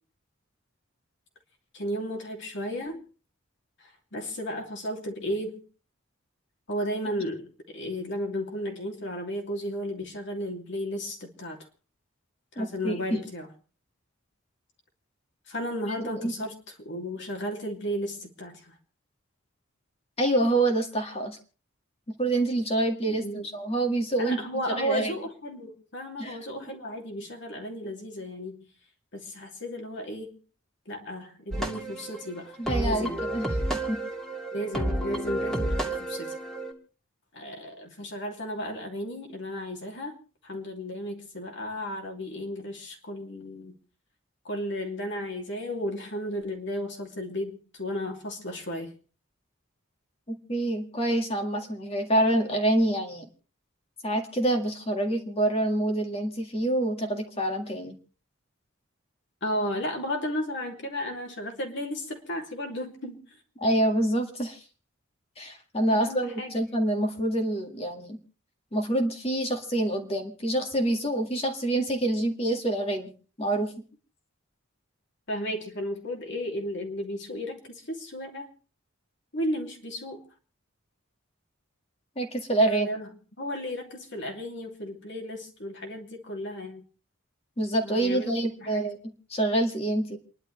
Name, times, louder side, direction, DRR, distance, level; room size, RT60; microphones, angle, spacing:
voice 1, 1.7-3.0 3.8-5.6 6.7-11.6 12.5-13.5 15.5-18.7 23.0-23.4 24.2-28.7 29.1-30.4 30.9-33.2 34.5-36.4 37.3-40.2 40.4-43.7 44.4-48.9 59.4-63.3 65.9-66.5 75.3-78.5 79.3-80.2 82.6-83.1 83.4-86.8 87.8-88.9, equal, 60° left, 2 dB, 2.9 m, -34 dB
voice 2, 12.6-13.2 16.2-16.3 20.2-21.4 22.2-23.2 23.5-24.4 24.8-25.1 26.2-26.4 32.6-33.5 33.9-34.0 50.3-53.3 54.0-58.0 63.6-64.6 65.4-68.2 68.7-73.1 73.4-73.7 82.2-82.9 87.6-90.2, right 1 dB, 30° left, 4 dB, 1.9 m, -26 dB
sound 1, 31.5-36.7, right 1 dB, ahead, 2.4 m, -30 dB
29.0 x 11.5 x 3.3 m, 0.38 s
head